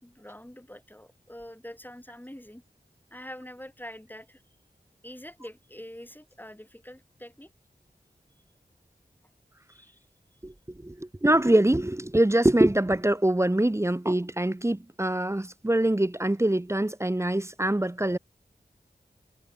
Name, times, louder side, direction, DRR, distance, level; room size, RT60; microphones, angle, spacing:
voice 1, 0.0-2.6 3.1-4.4 5.0-7.5 9.7-10.0, left 1 dB, 10° left, 5.4 m, -45 dB
voice 2, 10.8-18.2, right 1 dB, 15° right, 0.8 m, -24 dB
wide cardioid pair, 50°, 17 cm